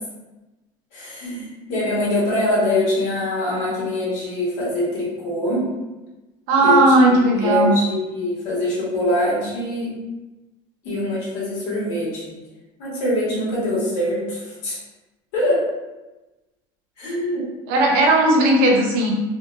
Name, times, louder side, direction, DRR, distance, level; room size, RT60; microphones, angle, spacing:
voice 1, 0.9-5.7 6.6-9.9 10.8-12.3 12.8-14.8 15.3-15.6 17.0-17.4, left 1 dB, 85° left, -6 dB, 1.4 m, -23 dB
voice 2, 6.5-7.7 17.7-19.1, right 1 dB, 90° right, 0 dB, 0.7 m, -16 dB
2.8 x 2.5 x 2.5 m, 1.1 s
cardioid pair, 170°, 11 cm